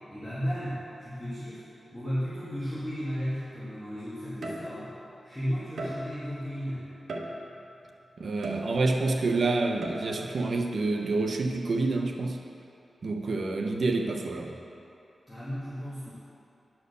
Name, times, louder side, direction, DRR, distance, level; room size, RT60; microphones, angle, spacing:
voice 1, 0.0-1.6 1.9-4.9 5.2-6.9 15.3-16.1, equal, 5° left, -11 dB, 2.0 m, -34 dB
sound 1, 3.3-3.4 4.4-5.0 5.8-6.3 7.1-7.7 8.4-9.1 9.8-10.3, right 1 dB, 80° right, 1.1 m, -37 dB
voice 2, 8.2-12.4 13.0-14.5, right 3 dB, 60° right, 3 dB, 0.8 m, -28 dB
10.5 x 4.6 x 6.7 m, 2.8 s
wide cardioid pair, 95°, 0 cm